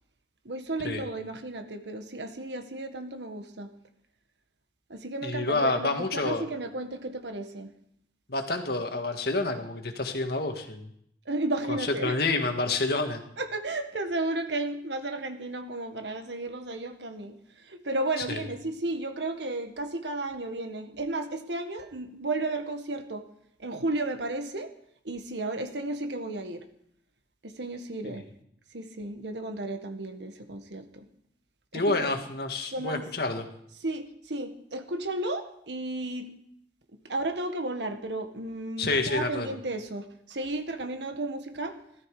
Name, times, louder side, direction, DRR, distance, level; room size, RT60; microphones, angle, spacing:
voice 1, 0.4-3.7 4.9-7.7 11.3-12.1 13.4-17.3 17.8-23.2 23.6-24.7 25.0-26.6 27.6-28.2 28.7-31.0 31.7-32.1 32.7-33.0 33.8-36.3 37.1-41.7, right 2 dB, 85° right, 7 dB, 1.6 m, -33 dB
voice 2, 5.2-6.4 8.3-10.9 11.7-13.2 18.2-18.5 28.0-28.2 31.7-33.5 38.8-39.6, left 2 dB, 60° left, 5 dB, 1.9 m, -28 dB
16.5 x 13.5 x 5.0 m, 0.70 s
head